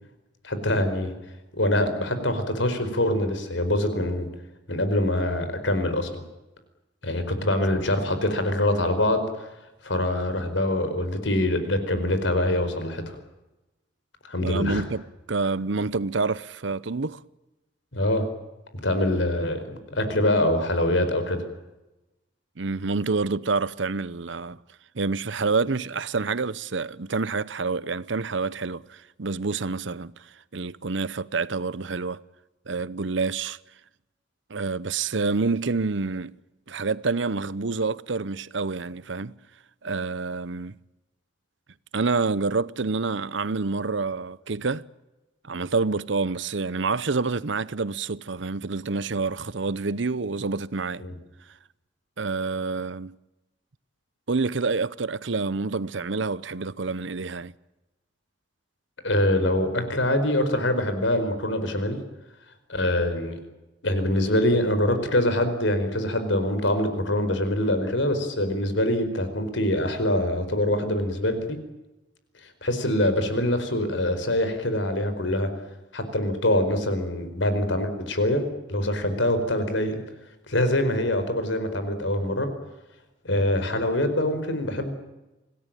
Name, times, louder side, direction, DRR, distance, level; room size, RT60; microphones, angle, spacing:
voice 1, 0.4-1.1 1.5-4.3 4.7-6.2 7.0-9.5 9.8-13.2 14.3-14.8 17.9-18.2 18.8-21.4 51.0-51.1 59.0-62.0 62.7-63.4 63.8-71.6 72.6-75.5 75.9-80.0 80.5-82.5 83.2-84.9, left 1 dB, 80° left, 4.8 m, -24 dB
voice 2, 14.4-15.0 15.3-17.2 22.6-24.6 24.9-32.2 32.7-33.6 34.5-36.3 36.7-39.3 39.8-40.7 41.9-44.8 45.4-51.0 52.2-53.1 54.3-57.5, right 4 dB, 75° right, 0.8 m, -27 dB
26.0 x 18.0 x 9.0 m
head